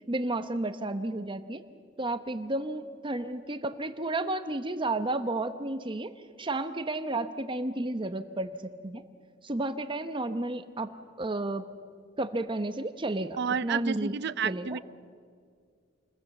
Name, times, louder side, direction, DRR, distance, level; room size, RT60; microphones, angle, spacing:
voice 1, 0.1-1.6 2.0-6.1 6.4-9.0 9.4-11.6 12.2-14.1 14.4-14.8, right 2 dB, 25° right, 9 dB, 1.0 m, -32 dB
voice 2, 13.4-14.8, right 6 dB, 60° right, 17 dB, 0.6 m, -30 dB
29.5 x 21.0 x 7.1 m, 2.1 s
head